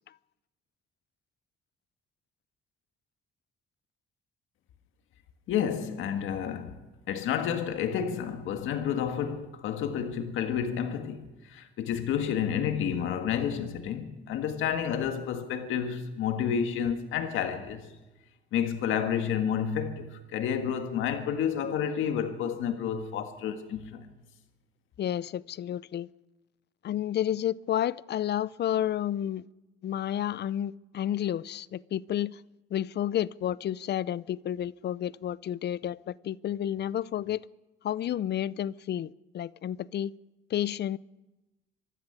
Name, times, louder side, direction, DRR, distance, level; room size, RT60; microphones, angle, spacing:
voice 1, 5.5-6.8 7.1-17.9 18.5-24.1, left 8 dB, 85° left, 1.8 m, -30 dB
voice 2, 25.0-26.1 26.8-29.4 29.8-32.4 32.7-37.4 37.8-40.1 40.5-41.0, left 11 dB, 60° left, 0.6 m, -31 dB
24.0 x 12.5 x 9.5 m
cardioid pair, 90°, 20 cm